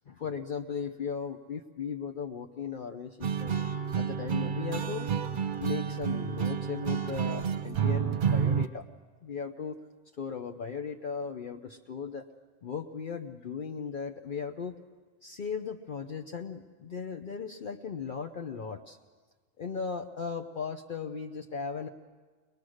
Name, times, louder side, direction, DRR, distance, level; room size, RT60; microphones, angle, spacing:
voice 1, 0.1-3.5 4.0-5.1 5.6-8.8 9.2-9.8 10.2-12.3 12.6-14.8 15.2-19.0 19.6-21.9, left 6 dB, 55° left, 4 dB, 0.9 m, -37 dB
sound 1, 3.2-8.7, right 7 dB, 55° right, 0.9 m, -30 dB
23.0 x 19.5 x 6.4 m, 1.4 s
omnidirectional pair, 1.1 m